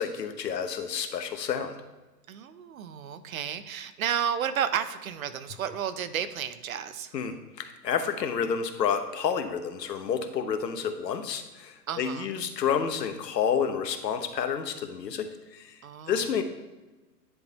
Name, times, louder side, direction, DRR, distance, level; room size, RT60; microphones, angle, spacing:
voice 1, 0.0-1.7 7.1-15.8 16.1-16.4, left 7 dB, 80° left, 8 dB, 1.0 m, -29 dB
voice 2, 2.3-7.1 11.9-12.3 15.8-16.2, right 8 dB, 55° right, 12 dB, 0.6 m, -32 dB
10.0 x 3.6 x 4.0 m, 1.2 s
hypercardioid pair, 155°, 49 cm